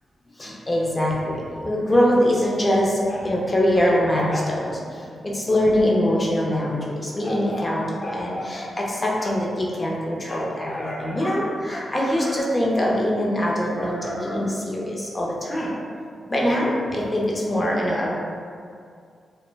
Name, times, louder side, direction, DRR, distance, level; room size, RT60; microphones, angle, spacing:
voice 1, 0.4-15.7 16.3-18.1, equal, 25° left, -3 dB, 0.5 m, -23 dB
2.1 x 2.1 x 3.3 m, 2.2 s
cardioid pair, 85°, 0 cm